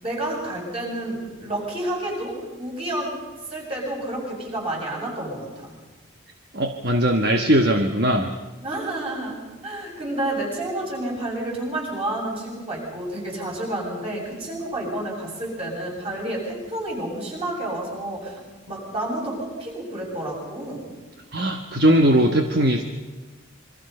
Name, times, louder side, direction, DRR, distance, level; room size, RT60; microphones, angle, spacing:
voice 1, 0.0-3.2 3.5-5.7 8.6-9.4 9.6-18.4 18.7-20.9, right 1 dB, 30° right, -2 dB, 7.4 m, -30 dB
voice 2, 6.5-8.3 21.3-22.8, right 1 dB, 50° right, 5 dB, 1.3 m, -19 dB
27.0 x 23.5 x 5.5 m, 1.2 s
head